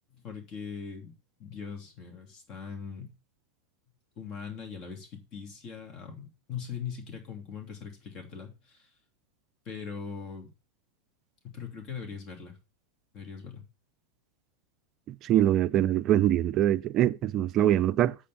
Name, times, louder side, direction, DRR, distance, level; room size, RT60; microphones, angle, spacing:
voice 1, 0.1-1.1 1.4-3.1 4.2-8.9 9.6-10.5 11.4-12.6 13.1-13.6, left 6 dB, 35° left, 2.9 m, -41 dB
voice 2, 15.1-18.2, right 12 dB, 35° right, 0.5 m, -24 dB
8.4 x 5.2 x 7.1 m
figure-of-eight pair, 90°, 0 cm